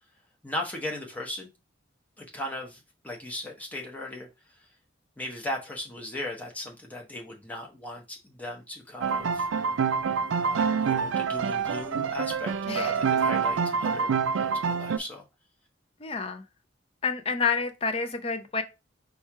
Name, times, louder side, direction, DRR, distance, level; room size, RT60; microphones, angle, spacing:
voice 1, 0.4-1.5 2.2-4.3 4.5-4.7 5.2-9.5 10.3-14.1 14.4-15.2, left 1 dB, 10° left, 0.9 m, -37 dB
sound 1, 9.0-15.0, right 6 dB, 90° right, 0.4 m, -26 dB
voice 2, 16.0-16.4 17.0-18.6, left 5 dB, 30° left, 0.5 m, -28 dB
4.4 x 2.3 x 4.5 m
head